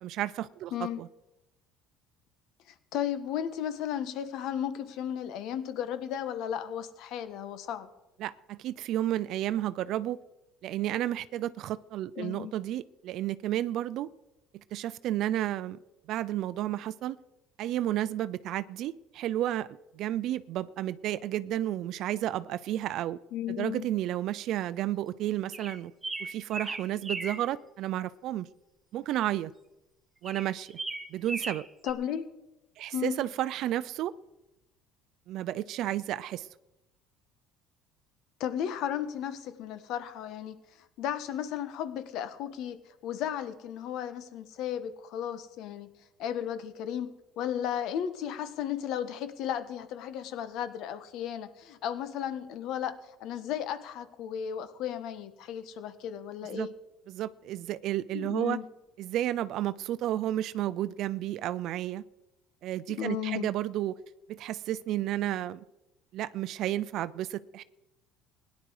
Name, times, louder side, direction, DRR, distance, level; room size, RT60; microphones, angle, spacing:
voice 1, 0.0-0.7 1.0-1.1 8.2-10.2 10.6-14.1 14.5-15.8 16.1-17.2 17.6-19.7 19.9-23.2 23.5-25.9 26.2-28.5 28.9-29.5 30.2-30.8 31.1-31.7 32.8-34.1 35.3-36.5 56.5-56.7 57.1-58.6 59.0-62.0 62.6-64.0 64.3-65.6 66.1-67.6, right 13 dB, 65° right, 17 dB, 0.5 m, -32 dB
voice 2, 0.7-1.0 2.9-7.9 12.2-12.5 23.3-23.9 31.8-32.3 32.9-33.2 38.4-40.5 41.0-42.8 43.0-45.9 46.2-47.1 47.4-52.9 53.2-56.7 58.1-58.6 63.0-63.5, left 9 dB, 70° left, 11 dB, 1.3 m, -34 dB
sound 1, 25.5-27.4 30.2-31.9, right 3 dB, 15° right, 1.0 m, -37 dB
17.0 x 10.5 x 4.8 m, 0.95 s
cardioid pair, 105°, 0 cm